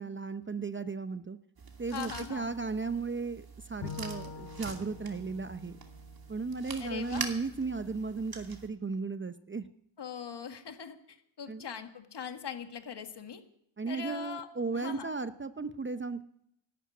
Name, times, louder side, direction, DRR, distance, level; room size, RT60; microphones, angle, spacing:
voice 1, 0.0-1.4 1.8-5.8 6.3-9.6 11.5-11.6 13.8-16.2, right 4 dB, 25° right, 11 dB, 0.7 m, -35 dB
sound 1, 1.6-8.7, right 5 dB, 45° right, 2.7 m, -45 dB
voice 2, 1.9-2.5 6.8-7.3 10.0-13.4 13.9-14.5 14.7-15.1, left 7 dB, 55° left, 7 dB, 1.9 m, -41 dB
Bowed string instrument, 3.8-7.1, left 5 dB, 75° left, 2.5 m, -46 dB
12.0 x 12.0 x 9.4 m, 0.75 s
cardioid pair, 75°, 50 cm